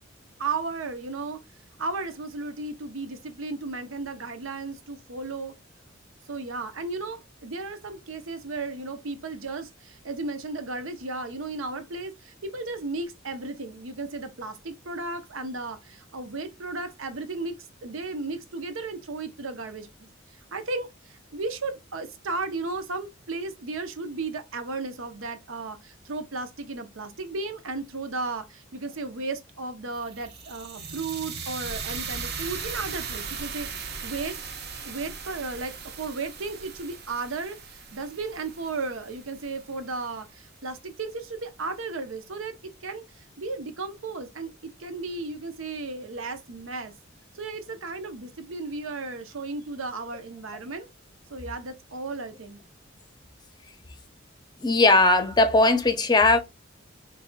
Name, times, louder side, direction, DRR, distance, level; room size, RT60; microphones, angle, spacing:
voice 1, 0.4-1.4 1.8-5.5 6.3-20.1 20.5-34.4 34.8-46.9 47.3-50.9 51.3-52.6, right 3 dB, 85° right, 0.8 m, -34 dB
sound 1, 29.9-40.1, right 5 dB, 55° right, 0.8 m, -38 dB
voice 2, 54.6-56.4, left 2 dB, 20° left, 0.6 m, -19 dB
4.1 x 3.3 x 2.2 m
head